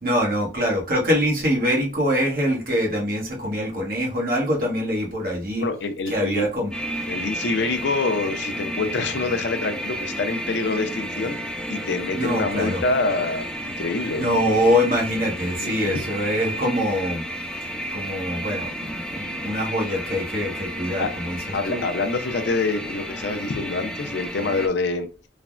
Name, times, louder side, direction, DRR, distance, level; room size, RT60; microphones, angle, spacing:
voice 1, 0.0-5.6 6.1-6.7 12.1-12.8 14.2-17.2 17.9-21.4 21.7-21.8, equal, 50° right, -1 dB, 1.0 m, -24 dB
voice 2, 5.6-6.5 7.1-11.4 11.7-14.3 15.6-15.9 20.3-20.5 21.0-21.1 21.5-25.1, left 3 dB, 80° left, 7 dB, 0.5 m, -26 dB
sound 1, 6.7-24.7, equal, 5° left, 0.3 m, -32 dB
3.3 x 2.1 x 2.4 m, 0.32 s
head